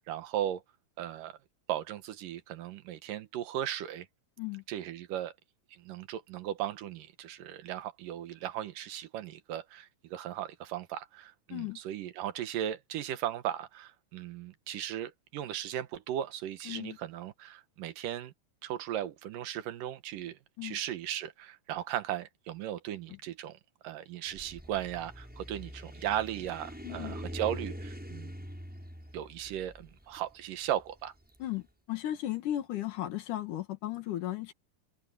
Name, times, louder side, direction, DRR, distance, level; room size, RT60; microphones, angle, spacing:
voice 1, 0.1-0.6 1.0-1.4 1.7-4.1 4.7-5.3 5.7-18.3 18.6-23.6 23.8-28.4 29.1-31.1, right 11 dB, 80° right, 2.8 m, -37 dB
voice 2, 16.7-17.0 20.6-20.8 26.8-27.2 31.4-34.5, left 13 dB, 70° left, 2.8 m, -35 dB
sound 1, 24.3-31.4, equal, ahead, 7.2 m, -44 dB
omnidirectional pair, 3.9 m